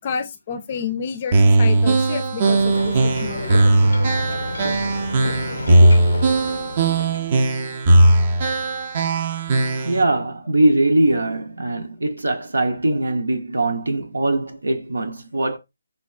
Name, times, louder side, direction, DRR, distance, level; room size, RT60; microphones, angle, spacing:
voice 1, 0.0-3.8 12.9-13.0, left 7 dB, 35° left, 0.4 m, -30 dB
sound 1, 1.3-10.0, right 2 dB, 35° right, 0.5 m, -18 dB
Ocean, 2.4-7.3, left 2 dB, 80° left, 0.6 m, -31 dB
voice 2, 5.7-6.1 9.8-15.6, right 2 dB, 90° right, 0.6 m, -21 dB
5.0 x 2.2 x 2.3 m
figure-of-eight pair, 155°, 0 cm